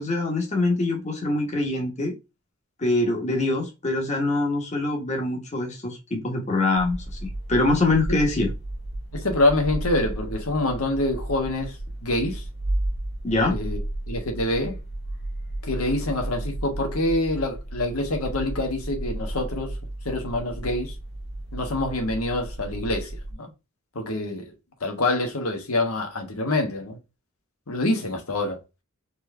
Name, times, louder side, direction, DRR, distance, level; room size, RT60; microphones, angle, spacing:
voice 1, 0.0-2.2 2.8-8.5 13.2-13.6, left 2 dB, 30° left, 1.0 m, -24 dB
sound 1, 6.8-23.3, right 1 dB, 50° left, 1.8 m, -33 dB
voice 2, 9.1-11.8 12.0-12.4 13.5-13.8 14.1-14.8 15.6-19.8 20.0-20.9 21.5-23.1 23.4-23.5 23.9-24.5 24.8-27.0 27.7-28.6, left 2 dB, 85° left, 1.3 m, -26 dB
4.4 x 3.0 x 3.3 m
head